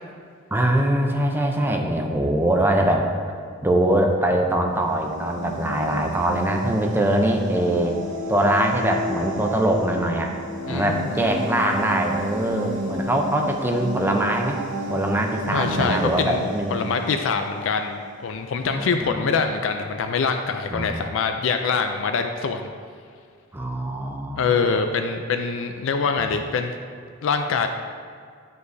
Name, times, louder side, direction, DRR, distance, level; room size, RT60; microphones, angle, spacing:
voice 1, 0.5-3.1 3.6-7.9 8.3-10.3 10.7-14.6 14.9-16.7 18.7-19.3 20.7-21.0 23.5-24.4 26.2-26.3, right 1 dB, 10° right, 2 dB, 0.5 m, -22 dB
sound 1, 4.7-18.3, right 1 dB, 40° right, 1.3 m, -32 dB
voice 2, 10.7-11.3 15.5-16.4 16.7-22.7 24.4-26.8 27.2-27.7, left 5 dB, 65° left, 6 dB, 0.4 m, -24 dB
9.8 x 5.2 x 2.6 m, 2.2 s
head